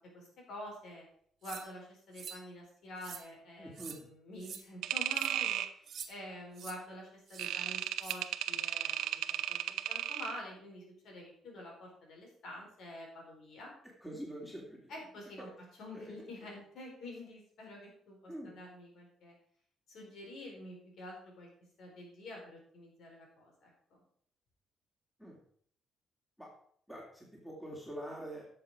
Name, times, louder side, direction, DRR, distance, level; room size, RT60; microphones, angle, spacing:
voice 1, 0.1-1.0 1.4-13.7 14.9-15.5 15.8-19.3 19.9-21.5 21.8-24.0, left 1 dB, 75° left, -1 dB, 4.8 m, -48 dB
sound 1, 1.4-1.7 2.1-2.4 3.0-3.2 3.7-4.0 4.4-4.6 5.1-5.3 5.9-6.1 6.5-6.8 7.3-7.5 8.0-8.2, right 7 dB, 60° right, 1.4 m, -46 dB
voice 2, 3.6-4.0 14.0-15.0 15.4-15.5 15.9-16.1 18.3-18.5 25.2-25.4 26.4-26.5 26.9-28.5, right 1 dB, 5° left, -2 dB, 3.0 m, -45 dB
sound 2, 4.8-5.7 7.4-10.4, right 12 dB, 90° right, 0.6 m, -35 dB
11.0 x 6.9 x 5.0 m, 0.62 s
cardioid pair, 90°, 0 cm